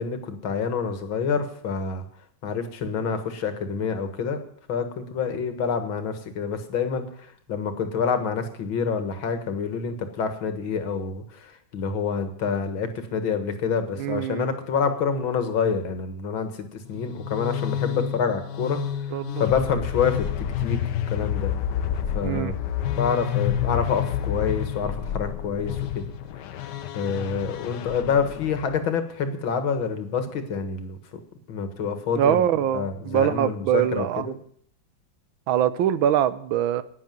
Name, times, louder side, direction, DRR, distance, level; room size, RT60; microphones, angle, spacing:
voice 1, 0.0-2.0 2.4-4.4 4.7-7.1 7.5-20.3 20.6-20.8 21.1-21.5 22.1-22.5 23.0-26.0 27.0-31.0 31.5-32.4 32.7-34.4, left 6 dB, 85° left, 8 dB, 2.3 m, -27 dB
voice 2, 14.0-14.5 17.9-18.0 19.1-19.4 22.2-22.5 32.2-34.3 35.5-36.8, right 10 dB, 85° right, 15 dB, 1.6 m, -23 dB
sound 1, 16.9-28.8, left 10 dB, 65° left, 1.4 m, -29 dB
11.0 x 9.5 x 9.3 m, 0.64 s
omnidirectional pair, 2.1 m